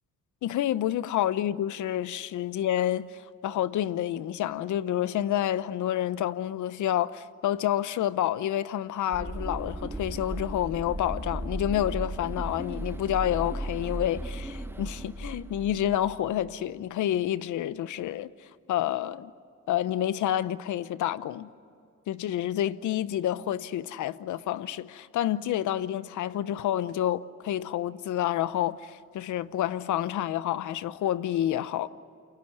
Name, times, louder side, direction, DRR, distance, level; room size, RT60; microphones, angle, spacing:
voice 1, 0.4-18.3 18.7-19.3 19.7-21.5 22.1-31.9, left 12 dB, 75° left, 0.9 m, -29 dB
sound 1, 9.1-16.5, right 1 dB, 10° right, 1.5 m, -36 dB
28.5 x 23.5 x 8.0 m
cardioid pair, 90°, 30 cm